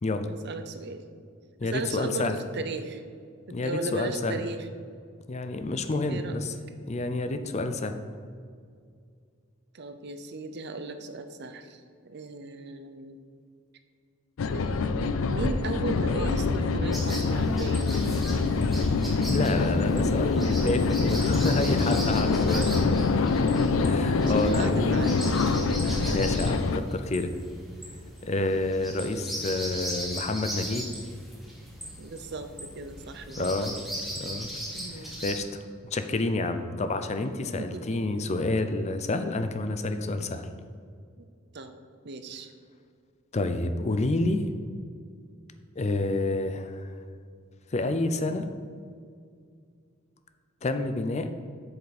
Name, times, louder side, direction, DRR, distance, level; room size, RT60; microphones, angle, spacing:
voice 1, 0.3-1.0 1.6-3.0 3.5-4.7 6.1-6.4 9.7-13.2 14.5-17.9 21.5-21.7 22.1-22.7 24.2-25.1 25.9-26.0 32.0-33.8 34.7-35.2 37.6-37.8 41.2-41.3 41.5-41.7 42.0-42.5, right 3 dB, 55° right, 8 dB, 0.6 m, -36 dB
voice 2, 1.6-2.4 3.5-4.4 5.3-8.0 19.3-22.7 23.9-25.0 26.1-27.3 28.2-30.9 33.4-33.8 34.2-34.5 34.9-40.5 43.3-44.5 45.8-46.9 47.7-48.5 50.6-51.3, left 2 dB, 35° left, 9 dB, 0.5 m, -29 dB
sound 1, 14.4-26.8, left 4 dB, 85° left, 0.5 m, -25 dB
sound 2, 16.9-35.4, equal, ahead, 1.5 m, -39 dB
8.3 x 7.0 x 4.1 m, 2.2 s
head